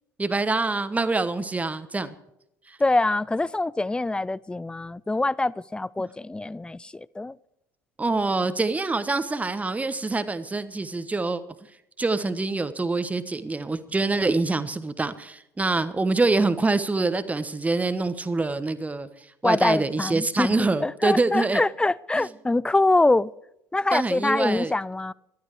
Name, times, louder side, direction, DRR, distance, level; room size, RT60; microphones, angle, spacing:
voice 1, 0.2-2.1 2.7-2.8 8.0-11.4 12.0-19.1 19.4-21.6 22.1-22.3 23.9-24.7, right 3 dB, 15° right, 1.2 m, -25 dB
voice 2, 2.8-7.3 19.4-23.3 23.7-25.1, left 2 dB, 10° left, 0.4 m, -24 dB
15.5 x 12.0 x 4.9 m
figure-of-eight pair, 60°, 10 cm